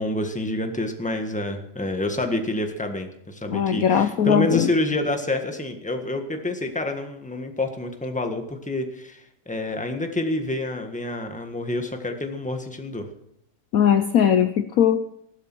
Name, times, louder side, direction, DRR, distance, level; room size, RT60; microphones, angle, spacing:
voice 1, 0.0-13.1, left 1 dB, 5° left, 5 dB, 1.4 m, -28 dB
voice 2, 3.5-4.7 13.7-15.0, left 8 dB, 60° left, 9 dB, 1.0 m, -19 dB
16.5 x 12.0 x 6.2 m, 0.75 s
omnidirectional pair, 1.9 m